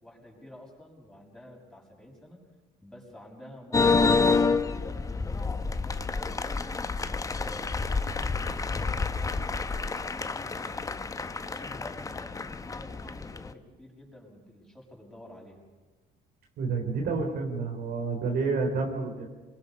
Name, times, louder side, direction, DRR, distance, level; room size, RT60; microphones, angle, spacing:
voice 1, 0.0-2.4 2.8-6.5 7.2-10.8 11.3-15.6, left 1 dB, 5° left, -1 dB, 6.4 m, -49 dB
sound 1, 3.7-13.5, left 4 dB, 20° left, 0.9 m, -28 dB
voice 2, 16.6-19.3, right 4 dB, 70° right, 3 dB, 3.5 m, -29 dB
26.5 x 22.0 x 5.5 m, 1.3 s
cardioid pair, 110°, 17 cm